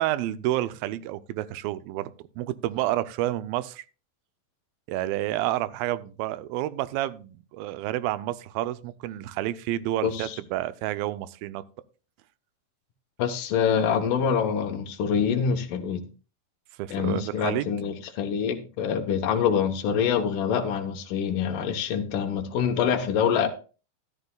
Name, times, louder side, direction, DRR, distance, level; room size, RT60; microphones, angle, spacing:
voice 1, 0.0-3.8 4.9-11.6 16.8-17.7, right 14 dB, 90° right, 2.4 m, -29 dB
voice 2, 10.0-10.4 13.2-16.0 16.9-23.5, left 7 dB, 70° left, 2.5 m, -25 dB
13.0 x 12.0 x 2.3 m
omnidirectional pair, 4.1 m